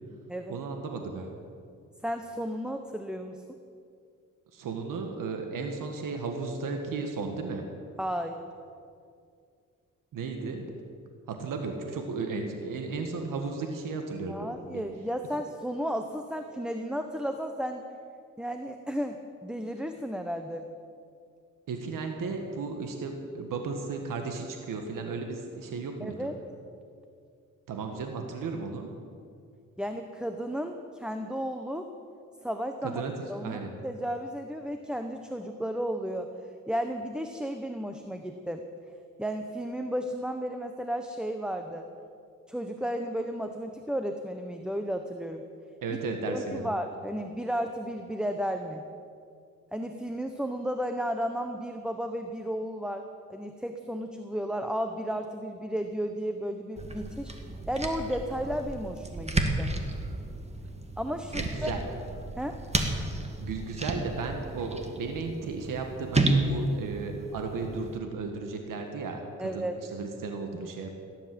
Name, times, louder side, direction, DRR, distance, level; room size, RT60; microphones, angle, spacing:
voice 1, 0.5-1.4 4.5-7.7 10.1-10.7 11.3-14.8 21.7-26.3 27.7-28.9 32.8-33.7 45.8-46.7 61.3-61.8 63.4-70.9, right 4 dB, 80° right, 4 dB, 1.7 m, -35 dB
voice 2, 2.0-3.4 8.0-8.4 14.3-17.8 18.4-20.7 26.0-26.3 29.8-31.9 32.4-33.0 33.3-36.3 36.7-38.6 39.2-41.9 42.5-45.4 46.3-48.8 49.7-59.7 61.0-61.7 62.4-62.6 69.4-69.8, equal, 5° right, 6 dB, 1.0 m, -33 dB
sound 1, 56.8-68.0, right 2 dB, 20° right, 2.0 m, -32 dB
16.5 x 11.0 x 7.7 m, 2.3 s
cardioid pair, 75°, 32 cm